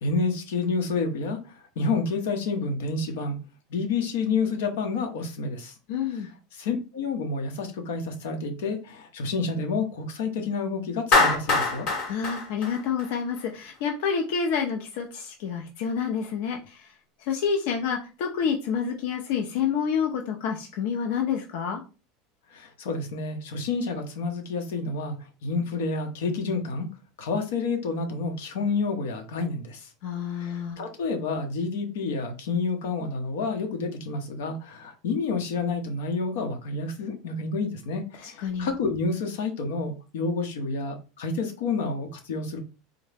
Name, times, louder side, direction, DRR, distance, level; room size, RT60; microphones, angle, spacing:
voice 1, 0.0-3.4 3.7-5.7 6.1-11.9 22.5-25.2 25.4-26.9 27.2-29.9 30.3-42.6, left 4 dB, 90° left, 5 dB, 0.8 m, -29 dB
voice 2, 5.9-6.3 12.1-16.8 17.3-21.8 30.0-30.8 38.2-38.7, left 6 dB, 55° left, 3 dB, 0.5 m, -28 dB
Clapping, 11.1-13.4, left 3 dB, 35° left, 0.9 m, -23 dB
3.7 x 2.1 x 3.3 m, 0.32 s
supercardioid pair, 180°, 0 cm